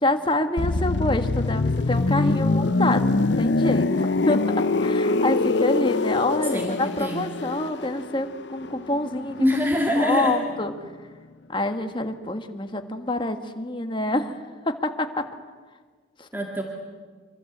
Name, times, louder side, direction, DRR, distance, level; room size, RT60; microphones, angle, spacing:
voice 1, 0.0-9.5 10.0-10.7 11.5-14.4 14.7-15.3 16.2-16.3, left 2 dB, 25° left, 6 dB, 1.7 m, -27 dB
sound 1, 0.6-10.2 10.5-10.7, left 3 dB, 65° left, 0.7 m, -24 dB
voice 2, 6.5-7.3 9.4-10.4 16.3-16.6, equal, 10° right, 0 dB, 2.1 m, -24 dB
26.0 x 25.5 x 8.1 m, 1.5 s
head